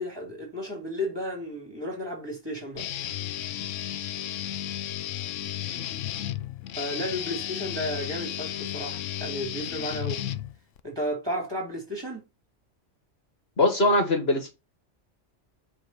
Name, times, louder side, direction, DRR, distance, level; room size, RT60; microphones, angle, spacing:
voice 1, 0.0-2.9 6.8-10.3 10.8-12.3, equal, 20° right, 3.2 m, -33 dB
Guitar, 2.8-10.8, left 11 dB, 85° left, 1.0 m, -33 dB
voice 2, 13.6-14.5, left 2 dB, 55° left, 1.8 m, -21 dB
7.6 x 3.5 x 6.0 m
omnidirectional pair, 1.3 m